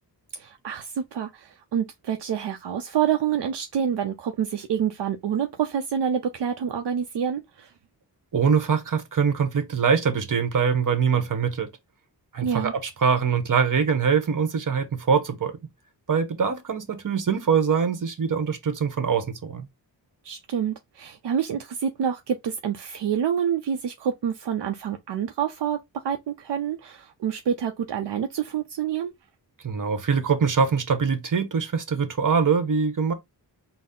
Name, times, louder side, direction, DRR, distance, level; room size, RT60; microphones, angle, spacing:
voice 1, 0.3-7.7 12.4-12.7 20.2-25.8 26.0-29.1, right 8 dB, 75° right, 0.5 m, -27 dB
voice 2, 8.3-11.7 12.3-15.5 16.1-19.7 29.6-33.1, right 6 dB, 45° right, 1.0 m, -23 dB
4.0 x 2.0 x 3.7 m
wide cardioid pair, 75°, 42 cm